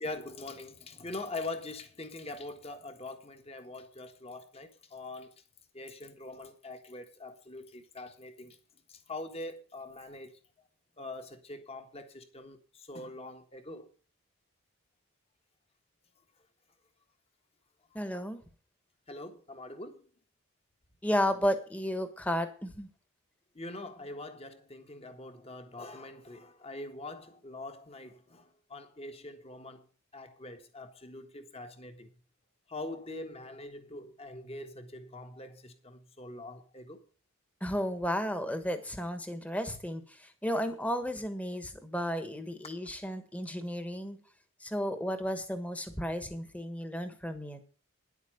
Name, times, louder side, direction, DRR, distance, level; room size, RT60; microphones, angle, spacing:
voice 1, 0.0-5.3 5.7-8.6 8.9-10.3 11.0-13.9 19.1-20.1 23.5-29.8 30.1-32.1 32.7-37.0 42.8-42.9, left 2 dB, 30° left, 1.5 m, -43 dB
voice 2, 17.9-18.4 21.0-22.9 37.6-44.2 44.6-47.6, equal, 5° left, 1.3 m, -33 dB
10.5 x 8.3 x 6.6 m
head